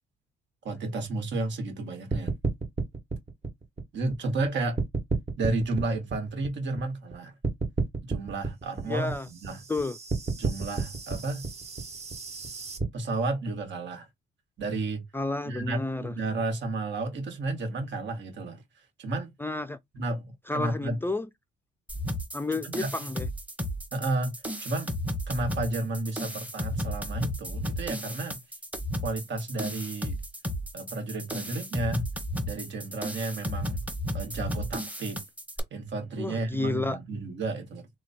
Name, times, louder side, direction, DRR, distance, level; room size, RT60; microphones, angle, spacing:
voice 1, 0.6-2.3 3.9-4.8 5.4-7.3 8.1-9.6 10.4-11.5 12.9-14.1 14.6-15.0 15.4-18.6 19.0-19.3 19.9-21.0 22.6-22.9 23.9-24.3 24.6-24.9 25.3-28.4 29.0-30.2 30.7-32.0 32.5-33.8 34.1-35.2 35.7-37.9, right 2 dB, 65° right, 1.5 m, -32 dB
sound 1, 2.1-4.5 4.8-7.1 7.4-12.8, right 3 dB, 30° right, 1.4 m, -31 dB
voice 2, 8.9-9.3 9.7-10.0 15.1-16.1 19.4-19.8 20.5-21.3 22.3-23.3 36.2-37.0, left 2 dB, 10° left, 0.4 m, -31 dB
sound 2, 21.9-35.6, equal, 5° right, 1.0 m, -34 dB
3.1 x 2.2 x 4.1 m
cardioid pair, 90°, 20 cm